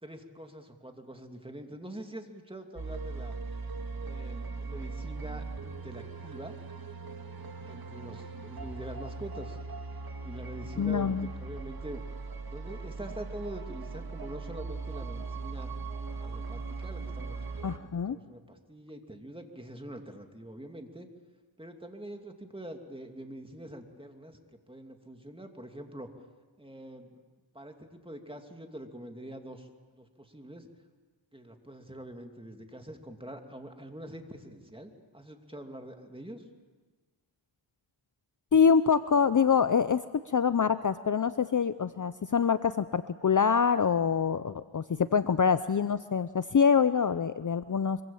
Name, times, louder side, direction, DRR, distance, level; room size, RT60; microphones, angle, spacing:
voice 1, 0.0-3.4 4.0-6.6 7.6-9.6 10.2-12.0 12.5-15.7 16.2-21.1 21.6-26.1 26.6-27.2 27.5-30.7 31.3-36.5, right 1 dB, 10° right, 4 dB, 2.6 m, -45 dB
sound 1, 2.8-17.8, right 4 dB, 50° right, 2.0 m, -39 dB
voice 2, 10.8-11.3 17.6-18.2 38.5-48.0, left 6 dB, 40° left, 13 dB, 0.7 m, -25 dB
25.0 x 24.0 x 7.2 m, 1.3 s
wide cardioid pair, 75°, 47 cm